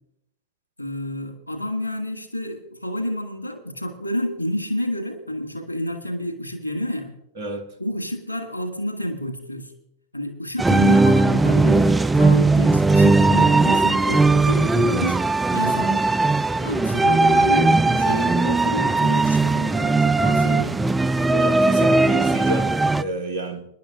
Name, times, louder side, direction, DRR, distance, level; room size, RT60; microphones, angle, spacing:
voice 1, 0.8-7.2 7.8-9.7 10.1-15.2 15.5-20.8, left 1 dB, 85° right, 1.9 m, -29 dB
voice 2, 7.4-7.7 20.2-20.6 21.3-23.7, right 2 dB, 55° right, 1.6 m, -30 dB
sound 1, 10.6-23.0, right 3 dB, 10° right, 0.4 m, -18 dB
26.0 x 10.5 x 2.5 m
figure-of-eight pair, 90°, 0 cm